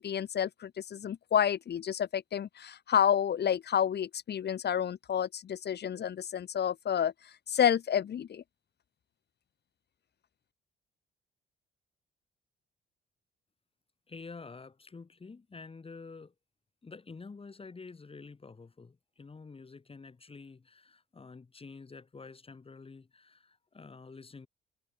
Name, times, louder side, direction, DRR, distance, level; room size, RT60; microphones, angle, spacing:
voice 1, 0.0-7.1 7.5-8.4, left 9 dB, 55° left, 2.2 m, -29 dB
voice 2, 14.1-16.3 16.8-24.5, left 4 dB, 30° left, 3.3 m, -48 dB
cardioid pair, 90°, 20 cm